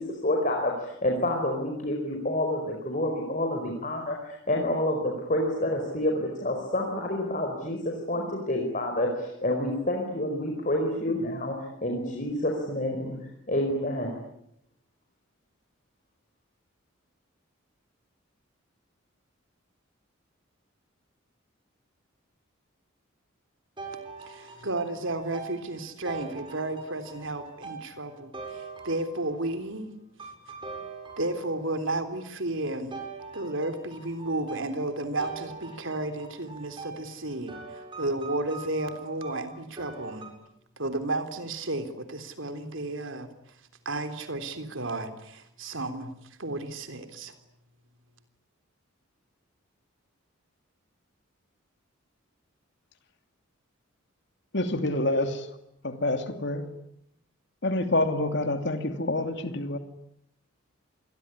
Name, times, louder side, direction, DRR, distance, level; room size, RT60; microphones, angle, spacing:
voice 1, 0.0-13.2 13.5-14.1, left 1 dB, 40° left, 1 dB, 4.8 m, -28 dB
sound 1, 23.8-29.5 30.2-31.8 32.9-40.3, right 4 dB, 25° right, 7.8 m, -43 dB
voice 2, 24.3-29.9 31.2-33.0 33.3-40.3 40.8-43.3 43.9-46.1 46.4-47.3, right 2 dB, 70° right, 8 dB, 3.5 m, -33 dB
voice 3, 54.5-55.5 55.8-56.7 57.6-59.8, left 2 dB, 55° left, 7 dB, 2.7 m, -27 dB
27.5 x 22.0 x 9.8 m, 0.79 s
head